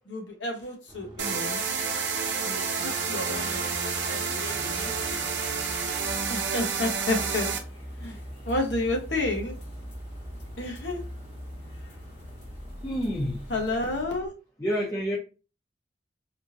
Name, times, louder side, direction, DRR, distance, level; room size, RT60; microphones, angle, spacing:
voice 1, 0.1-1.6 2.4-5.2 6.3-7.5 8.0-8.1 8.4-9.5 10.6-11.0 13.5-14.3, left 2 dB, 85° left, 1 dB, 1.1 m, -31 dB
sound 1, 0.9-14.3, equal, 25° right, 0.8 m, -44 dB
sound 2, 1.2-7.6, right 5 dB, 75° right, 0.7 m, -29 dB
sound 3, 3.3-14.0, equal, 65° left, 1.8 m, -44 dB
voice 2, 12.8-13.4 14.6-15.2, equal, 20° left, -4 dB, 0.6 m, -28 dB
3.5 x 2.6 x 2.8 m, 0.34 s
head